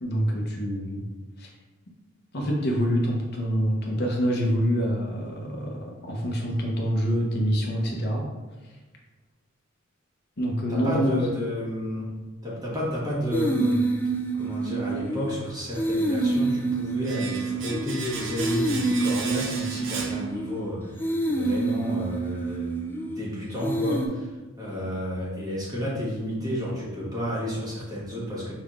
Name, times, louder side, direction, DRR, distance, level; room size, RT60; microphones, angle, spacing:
voice 1, 0.0-1.0 1.4-1.5 2.3-8.2 10.4-11.2, equal, 50° left, -1 dB, 0.7 m, -26 dB
voice 2, 10.7-12.1 12.4-13.8 14.3-21.0 21.3-24.3 24.6-28.5, equal, 20° right, -6 dB, 1.2 m, -31 dB
sound 1, 13.3-15.4 15.7-18.0 18.4-20.6 21.0-23.2 23.6-24.1, right 2 dB, 10° left, 0.3 m, -27 dB
Domestic sounds home sounds, 17.0-20.9 21.1-21.3, right 4 dB, 65° right, 0.6 m, -36 dB
5.3 x 3.5 x 2.4 m, 1.2 s
head